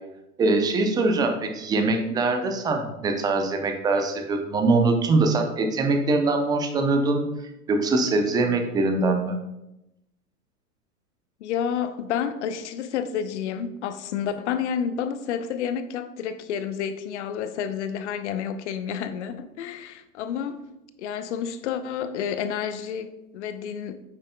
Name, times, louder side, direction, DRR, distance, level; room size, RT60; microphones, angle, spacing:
voice 1, 0.4-7.3 7.7-9.3, right 3 dB, 10° right, 0.5 m, -23 dB
voice 2, 11.4-20.6 21.0-24.0, left 8 dB, 50° left, 0.8 m, -30 dB
8.9 x 7.3 x 2.2 m
hypercardioid pair, 110°, 46 cm